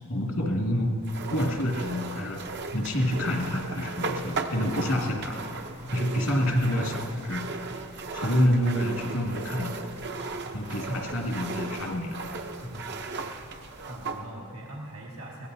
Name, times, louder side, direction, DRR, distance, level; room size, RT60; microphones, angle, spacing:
voice 1, 0.1-0.9 1.3-2.4 2.7-5.4 5.8-7.4 8.1-9.7 10.5-12.2, equal, 80° left, 0 dB, 2.2 m, -27 dB
sound 1, 1.0-14.2, right 3 dB, 50° right, 0.7 m, -36 dB
voice 2, 12.6-13.0 13.9-15.5, equal, 80° right, -3 dB, 1.6 m, -42 dB
21.5 x 16.5 x 2.7 m, 2.5 s
head